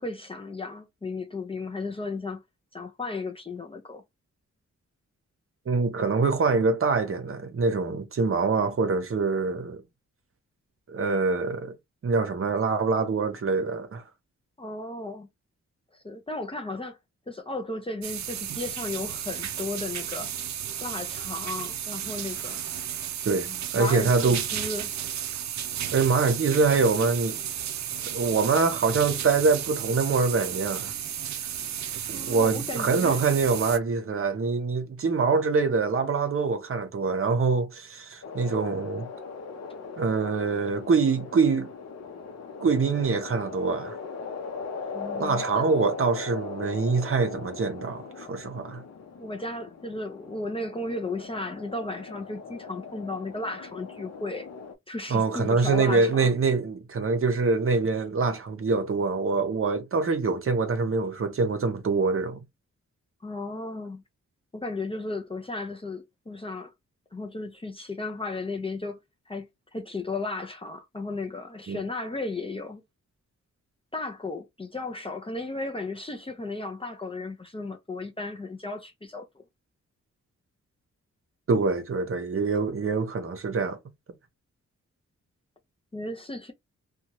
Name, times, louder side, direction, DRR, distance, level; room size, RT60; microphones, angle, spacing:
voice 1, 0.0-2.4 2.7-4.0 14.6-15.3 15.9-17.0 17.3-20.3 20.8-22.6 23.5-25.1 32.1-33.2 44.9-45.7 49.2-54.5 54.9-56.3 63.2-64.0 64.5-66.7 67.1-69.0 69.3-72.8 73.9-79.4 85.9-86.5, left 2 dB, 20° left, 0.5 m, -35 dB
voice 2, 5.7-9.8 10.9-11.7 12.0-14.0 23.3-24.4 25.9-27.4 28.1-30.9 32.1-39.1 40.0-41.7 42.6-44.0 45.2-48.8 55.1-62.4 71.7-71.8 81.5-83.8, right 4 dB, 50° right, 0.7 m, -25 dB
sound 1, 18.0-33.8, right 10 dB, 75° right, 0.5 m, -33 dB
sound 2, 38.2-54.7, left 5 dB, 60° left, 0.7 m, -39 dB
2.7 x 2.3 x 3.0 m
wide cardioid pair, 135°, 29 cm